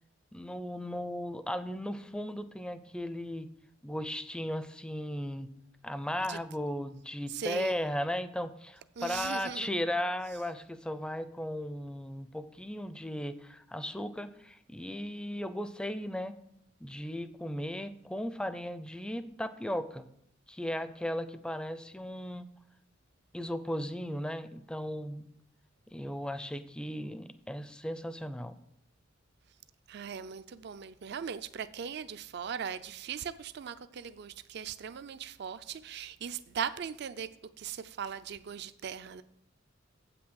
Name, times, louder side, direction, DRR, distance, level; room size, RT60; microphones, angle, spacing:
voice 1, 0.3-3.5 3.8-5.5 5.8-16.3 16.8-20.0 20.5-22.5 23.3-25.3 25.9-28.6, left 1 dB, 5° left, 0.4 m, -36 dB
voice 2, 7.3-7.9 9.0-9.7 29.9-37.3 37.6-39.2, right 7 dB, 60° right, 0.4 m, -39 dB
8.0 x 6.0 x 6.3 m
head